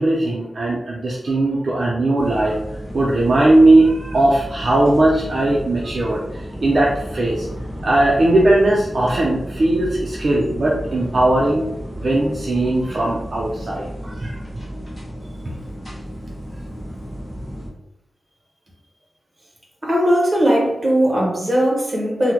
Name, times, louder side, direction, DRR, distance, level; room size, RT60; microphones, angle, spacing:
voice 1, 0.0-2.6 2.9-7.5 7.8-11.7 12.0-14.4 15.5-15.6, right 2 dB, 45° right, -3 dB, 0.4 m, -18 dB
sound 1, 2.2-17.7, equal, 15° left, 0.9 m, -33 dB
voice 2, 19.8-22.3, equal, 30° right, -2 dB, 1.0 m, -18 dB
3.5 x 2.1 x 2.9 m, 0.88 s
wide cardioid pair, 125°, 0 cm